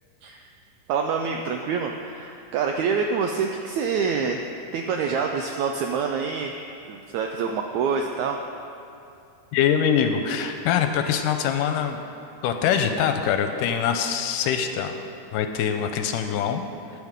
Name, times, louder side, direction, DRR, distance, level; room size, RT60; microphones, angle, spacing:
voice 1, 0.9-4.4 4.7-6.5 6.9-8.4, right 5 dB, 85° right, 3 dB, 1.6 m, -26 dB
voice 2, 9.5-12.0 12.4-15.0 15.3-16.6, left 8 dB, 80° left, 6 dB, 2.1 m, -23 dB
15.0 x 9.5 x 3.7 m, 2.7 s
omnidirectional pair, 3.9 m